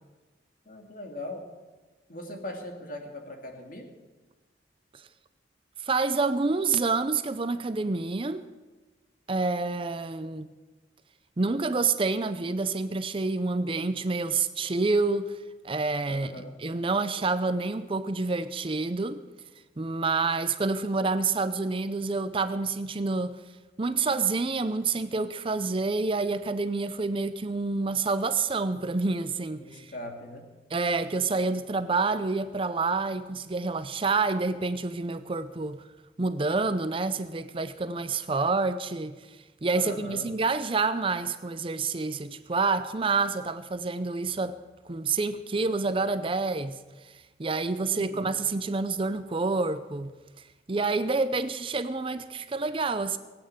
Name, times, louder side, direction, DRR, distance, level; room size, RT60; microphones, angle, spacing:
voice 1, 0.7-1.4 2.1-3.9 16.0-16.6 29.6-30.5 39.7-40.3 47.8-48.4, left 1 dB, 50° left, 2.4 m, -40 dB
voice 2, 5.8-8.4 9.3-10.5 11.4-15.3 15.6-19.2 19.8-23.4 23.8-29.9 30.7-35.8 36.2-39.2 39.6-44.6 44.9-46.8 47.1-50.1 50.7-53.2, right 3 dB, 30° right, 0.5 m, -28 dB
19.0 x 8.8 x 7.8 m
head